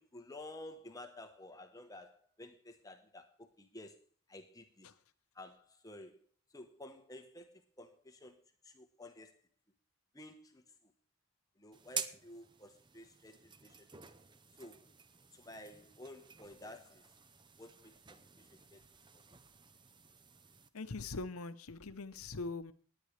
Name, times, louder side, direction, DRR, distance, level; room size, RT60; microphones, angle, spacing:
voice 1, 0.0-4.0 4.3-4.9 5.3-6.2 6.5-8.4 8.6-9.3 10.1-10.6 11.6-14.1 14.6-14.8 15.3-17.1 17.6-18.5 18.7-18.8, left 1 dB, 15° left, 1.1 m, -52 dB
sound 1, 11.7-20.7, right 6 dB, 20° right, 0.6 m, -49 dB
voice 2, 20.7-22.7, left 3 dB, 80° left, 0.8 m, -42 dB
19.5 x 9.5 x 3.3 m
head